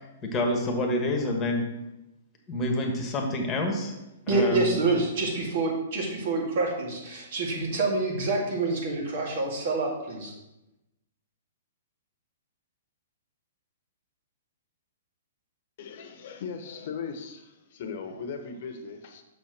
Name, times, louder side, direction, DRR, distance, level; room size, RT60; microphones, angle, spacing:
voice 1, 0.2-1.6 2.5-3.9 4.3-4.8, left 1 dB, 20° left, 2 dB, 1.4 m, -27 dB
voice 2, 4.3-10.3, right 3 dB, 55° right, -1 dB, 2.3 m, -27 dB
voice 3, 15.8-19.2, left 5 dB, 55° left, 7 dB, 1.0 m, -38 dB
6.6 x 4.2 x 6.6 m, 0.95 s
hypercardioid pair, 145°, 0 cm